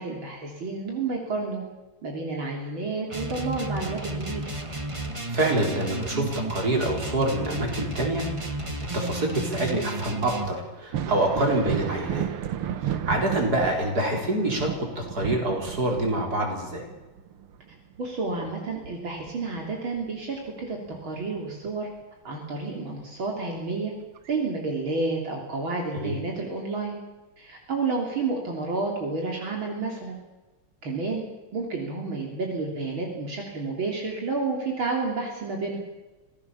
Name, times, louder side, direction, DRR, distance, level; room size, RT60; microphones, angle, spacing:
voice 1, 0.0-1.6 2.0-4.4 18.0-21.9 22.2-23.9 24.3-27.0 27.4-30.2 30.8-31.2 31.5-35.8, right 3 dB, 70° right, 0 dB, 3.9 m, -30 dB
sound 1, 3.1-10.5, right 2 dB, 15° right, 1.6 m, -33 dB
voice 2, 5.3-8.2 8.9-12.3 12.8-16.8 25.9-26.2, right 1 dB, 45° right, 1 dB, 5.0 m, -26 dB
Thunder, 10.8-20.1 20.5-21.7 23.3-23.4 24.2-24.3, right 10 dB, 90° right, 2.1 m, -34 dB
26.0 x 17.0 x 7.0 m, 1.2 s
omnidirectional pair, 2.3 m